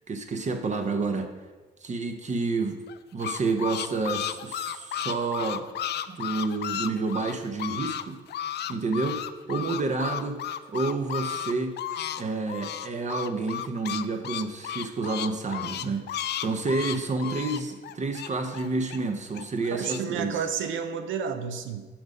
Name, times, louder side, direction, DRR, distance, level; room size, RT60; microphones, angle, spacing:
voice 1, 0.1-1.3 1.8-2.8 3.1-5.7 6.1-8.2 8.7-9.2 9.5-10.4 10.7-11.8 12.2-20.4, right 3 dB, 35° right, 6 dB, 0.8 m, -29 dB
sound 1, 2.9-8.0 8.3-12.2 12.5-19.0 19.3-20.0, left 10 dB, 60° left, 0.4 m, -33 dB
voice 2, 19.7-21.9, right 7 dB, 80° right, 9 dB, 0.7 m, -31 dB
5.9 x 5.1 x 5.3 m, 1.3 s
cardioid pair, 90°, 20 cm